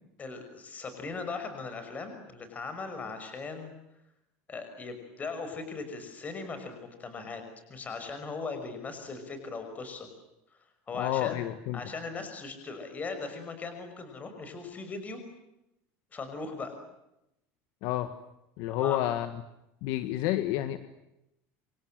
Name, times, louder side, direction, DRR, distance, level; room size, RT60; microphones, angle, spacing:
voice 1, 0.2-3.7 4.5-7.4 7.7-10.1 10.9-11.5 11.7-15.2 16.1-16.8 18.7-19.1, left 4 dB, 20° left, 7 dB, 6.0 m, -39 dB
voice 2, 10.9-11.8 17.8-18.1 18.6-19.3 19.8-20.8, left 14 dB, 65° left, 10 dB, 1.9 m, -29 dB
28.0 x 27.0 x 7.8 m, 0.87 s
cardioid pair, 150°, 7 cm